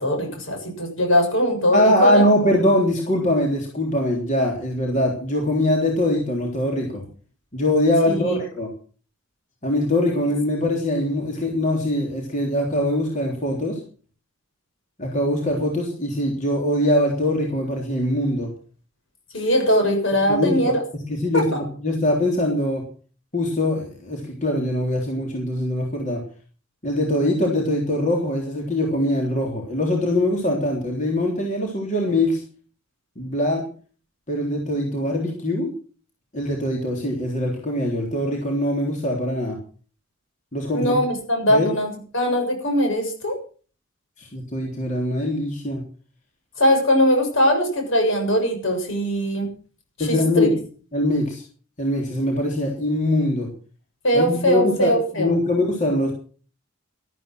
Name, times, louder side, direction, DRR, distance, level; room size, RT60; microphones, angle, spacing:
voice 1, 0.0-2.2 8.0-8.4 19.3-20.8 21.3-21.4 40.7-41.9 42.1-43.4 46.6-49.5 50.1-50.5 54.0-55.3, equal, 70° left, 3 dB, 7.1 m, -21 dB
voice 2, 1.7-7.0 7.5-8.7 9.6-13.8 15.0-18.5 20.3-22.8 23.3-26.2 26.8-32.4 33.2-33.7 34.3-35.7 36.3-39.6 40.5-41.0 41.5-41.7 44.2-45.8 50.0-50.5 50.9-51.4 51.8-53.5 54.1-56.1, left 1 dB, 35° left, 0 dB, 3.6 m, -22 dB
13.5 x 13.0 x 6.2 m, 0.40 s
head